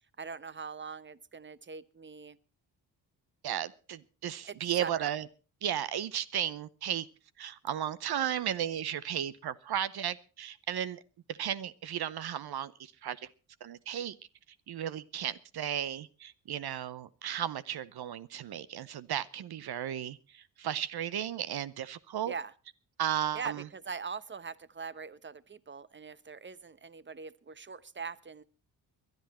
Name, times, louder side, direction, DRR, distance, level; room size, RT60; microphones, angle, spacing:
voice 1, 0.0-2.4 4.5-5.1 22.3-22.5 23.3-28.4, right 5 dB, 25° right, 17 dB, 1.0 m, -42 dB
voice 2, 3.4-5.3 5.6-7.1 7.4-11.0 11.3-13.3 13.6-14.2 14.7-22.3 23.0-23.6, right 10 dB, 55° right, 17 dB, 0.8 m, -34 dB
22.0 x 10.5 x 4.2 m, 0.35 s
supercardioid pair, 50°, 45 cm